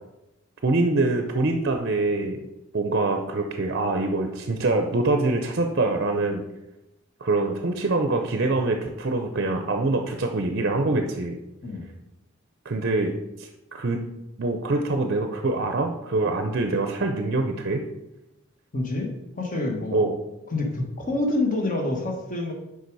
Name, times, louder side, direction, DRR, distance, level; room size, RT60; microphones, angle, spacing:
voice 1, 0.6-2.5 2.7-6.4 7.2-11.4 12.6-13.1 13.4-14.0 14.4-17.8 19.9-20.2, right 2 dB, 50° right, 5 dB, 0.6 m, -24 dB
voice 2, 18.7-20.1 20.5-22.5, left 2 dB, 40° left, 1 dB, 1.3 m, -27 dB
6.7 x 5.0 x 4.6 m, 0.94 s
head